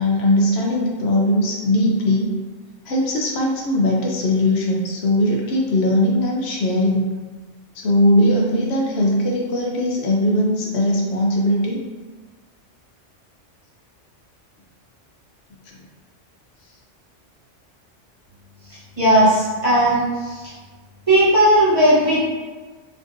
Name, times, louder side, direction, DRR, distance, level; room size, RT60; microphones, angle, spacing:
voice 1, 0.0-2.3 2.9-7.1 7.7-11.8, left 1 dB, 65° left, -2 dB, 0.8 m, -19 dB
voice 2, 19.0-20.4 21.1-22.2, right 1 dB, 30° right, -10 dB, 1.0 m, -16 dB
3.5 x 2.5 x 2.5 m, 1.4 s
omnidirectional pair, 1.3 m